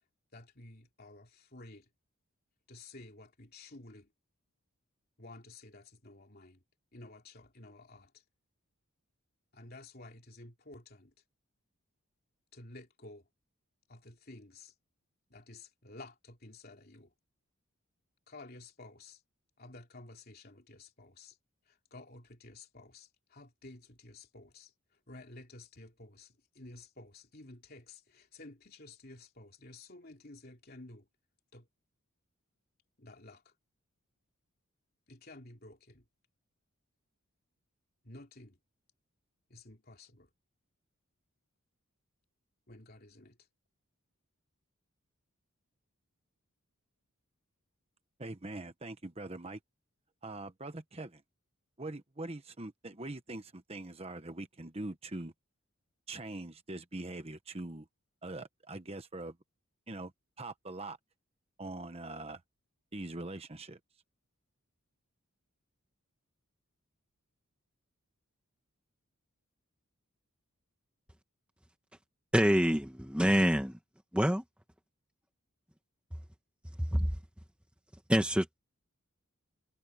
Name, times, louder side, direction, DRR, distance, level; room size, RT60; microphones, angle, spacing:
voice 1, 0.3-1.8 2.7-4.1 5.2-6.6 6.9-8.2 9.5-11.1 12.5-13.2 13.9-14.7 15.3-17.1 18.3-19.2 19.6-21.4 21.7-24.7 25.1-31.1 31.5-31.7 33.0-33.5 35.1-36.0 38.0-38.6 39.5-40.3 42.7-43.4, left 2 dB, 45° left, 3.2 m, -52 dB
voice 2, 48.2-49.6 50.2-51.2 51.8-55.3 56.1-57.9 58.2-59.4 59.9-60.1 60.4-61.0 61.6-62.4 62.9-63.8, right 2 dB, 25° right, 1.1 m, -42 dB
voice 3, 72.3-73.8 74.1-74.4 76.9-77.1 78.1-78.6, equal, 5° right, 1.2 m, -26 dB
head